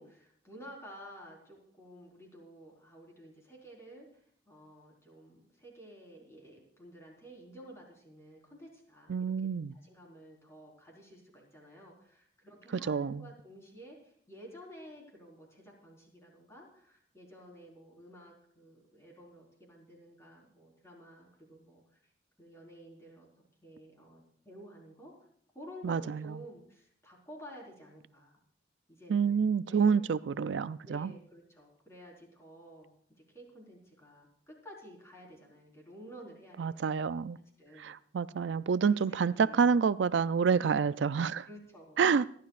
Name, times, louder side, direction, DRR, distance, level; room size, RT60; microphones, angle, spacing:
voice 1, 0.0-22.0 22.4-23.3 23.6-25.1 25.5-28.3 28.9-30.1 30.8-32.9 33.3-37.1 37.6-37.9 38.8-39.7 41.4-42.0, equal, 15° left, -1 dB, 4.4 m, -52 dB
voice 2, 9.1-9.7 12.9-13.2 25.8-26.2 29.1-31.1 36.6-37.4 37.8-41.4 42.0-42.3, right 6 dB, 80° right, 15 dB, 0.4 m, -28 dB
27.0 x 11.5 x 2.5 m, 0.62 s
head